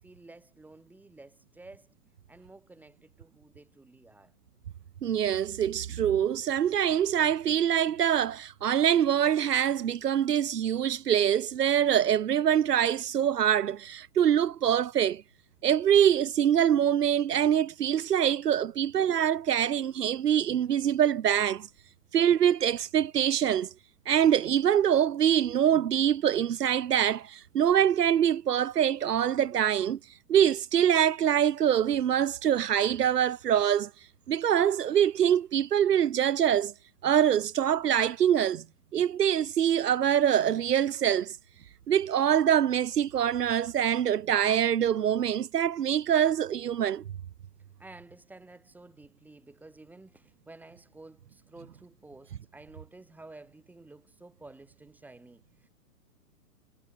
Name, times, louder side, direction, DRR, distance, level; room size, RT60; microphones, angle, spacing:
voice 1, 0.0-1.9 2.3-4.3 20.2-20.3 47.8-55.7, right 2 dB, 5° right, 7.8 m, -52 dB
voice 2, 5.0-15.2 15.6-21.7 22.1-23.7 24.1-30.0 30.3-33.9 34.3-36.7 37.0-38.6 38.9-41.4 41.9-47.0, right 9 dB, 80° right, 2.4 m, -24 dB
hypercardioid pair, 165°, 47 cm